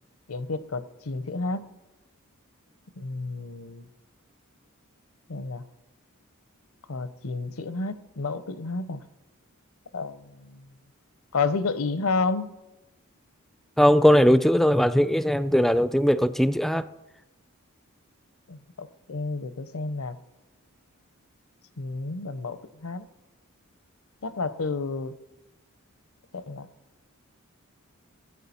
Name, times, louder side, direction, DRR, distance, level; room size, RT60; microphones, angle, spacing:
voice 1, 0.3-1.7 3.0-3.9 5.3-5.6 6.9-9.0 9.9-10.6 11.3-12.5 18.5-20.2 21.8-23.1 24.2-25.2 26.3-26.7, left 3 dB, 75° left, 13 dB, 0.7 m, -31 dB
voice 2, 13.8-16.9, equal, ahead, 14 dB, 0.3 m, -19 dB
15.5 x 8.7 x 4.3 m, 1.0 s
head